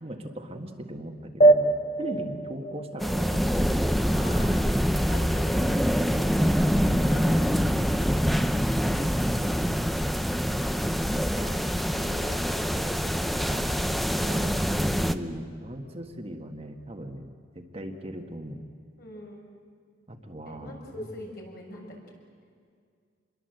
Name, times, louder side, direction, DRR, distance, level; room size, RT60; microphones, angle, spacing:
voice 1, 0.0-3.9 8.8-9.6 10.7-11.0 11.4-11.6 13.5-13.7 14.1-17.3 17.5-18.6 20.1-21.1, equal, 30° right, 3 dB, 1.7 m, -39 dB
sound 1, 1.4-4.4, right 2 dB, 35° left, 1.0 m, -24 dB
voice 2, 2.0-2.3 4.0-4.6 5.1-5.7 6.3-7.8 10.3-10.6 11.3-11.6 11.9-14.8 19.0-19.5 20.4-21.9, left 1 dB, 55° left, -1 dB, 6.8 m, -43 dB
sound 2, 3.0-15.1, equal, ahead, 0.7 m, -25 dB
27.5 x 22.5 x 8.0 m, 2.2 s
head